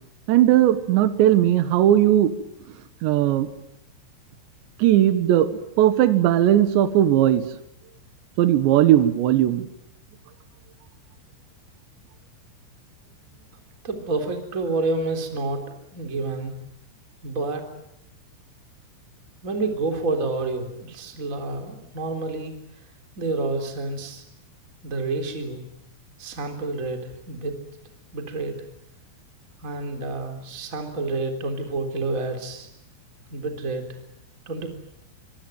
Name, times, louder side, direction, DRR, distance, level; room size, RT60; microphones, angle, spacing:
voice 1, 0.3-2.3 3.0-3.5 4.8-7.4 8.4-9.7, right 12 dB, 70° right, 11 dB, 3.4 m, -18 dB
voice 2, 13.8-15.6 15.9-16.6 17.2-17.6 19.4-22.5 23.2-24.2 24.8-25.6 26.2-27.6 28.1-28.6 29.6-32.7 33.3-34.0 34.4-34.7, right 3 dB, 20° right, 5 dB, 3.2 m, -29 dB
25.5 x 24.0 x 9.3 m, 0.79 s
omnidirectional pair, 5.9 m